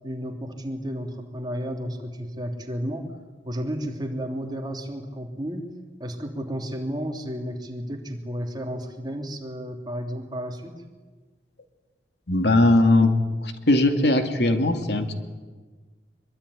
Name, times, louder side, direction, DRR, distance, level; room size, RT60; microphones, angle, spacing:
voice 1, 0.0-3.2 3.4-5.7 6.0-10.7, equal, 25° right, 3 dB, 3.2 m, -32 dB
voice 2, 12.3-13.1 13.4-15.1, left 2 dB, 65° left, 6 dB, 2.4 m, -19 dB
24.0 x 23.5 x 9.9 m, 1.3 s
head